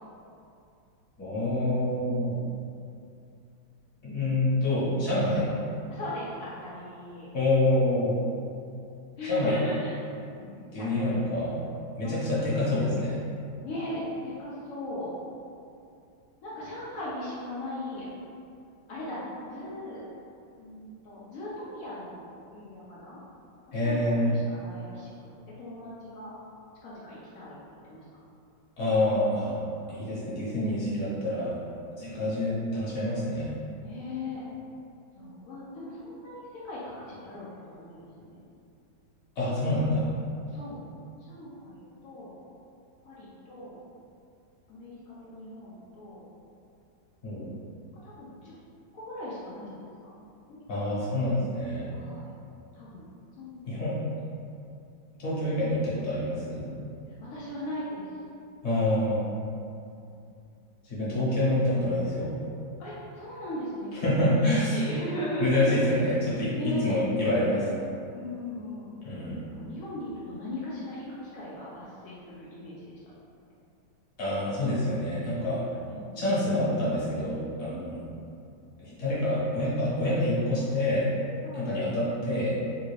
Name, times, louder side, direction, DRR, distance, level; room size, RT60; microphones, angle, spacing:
voice 1, 1.2-2.4 4.0-5.5 7.3-8.2 9.2-9.5 10.7-11.5 12.0-13.2 23.7-24.3 28.8-29.6 29.9-31.5 32.0-33.5 39.4-40.1 47.2-47.5 50.7-51.9 53.7-54.0 55.2-56.6 58.6-59.2 60.9-62.3 64.0-64.8 65.4-67.7 69.0-69.4 74.2-75.6 76.2-78.0 78.8-81.0 81.5-82.6, left 1 dB, 45° left, -10 dB, 1.0 m, -27 dB
voice 2, 5.9-7.3 9.2-9.9 10.3-11.6 12.0-12.4 13.6-15.1 16.4-18.1 18.9-19.2 19.4-20.0 20.6-22.2 22.5-23.2 23.8-25.3 25.6-26.3 26.8-27.5 27.8-28.0 29.8-30.0 32.0-32.4 33.8-34.4 35.2-38.4 40.5-40.8 41.3-42.4 43.0-43.8 44.7-46.2 48.0-48.5 48.9-51.0 51.9-52.3 52.7-53.1 53.4-54.0 57.3-58.1 62.8-64.4 64.7-65.8 66.5-66.9 68.1-68.9 69.5-71.0 71.3-72.9 75.3-76.2 77.7-78.0 80.6-80.7 81.4-81.7, left 1 dB, 80° left, -8 dB, 0.7 m, -38 dB
3.4 x 2.4 x 3.2 m, 2.6 s
omnidirectional pair, 2.2 m